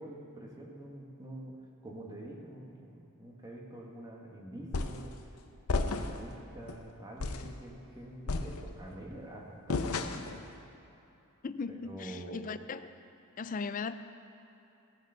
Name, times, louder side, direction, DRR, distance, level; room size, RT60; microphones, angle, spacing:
voice 1, 0.0-1.6 1.8-5.2 5.7-10.3 11.7-12.5, right 1 dB, 15° right, -2 dB, 1.5 m, -46 dB
sound 1, 4.7-5.1 5.7-6.3 6.7-6.8 7.2-7.6 8.3-9.0 9.7-10.4, left 3 dB, 80° left, 0.7 m, -33 dB
voice 2, 11.4-12.9 13.4-13.9, left 4 dB, 35° left, 12 dB, 0.4 m, -38 dB
17.5 x 7.1 x 5.6 m, 2.9 s
head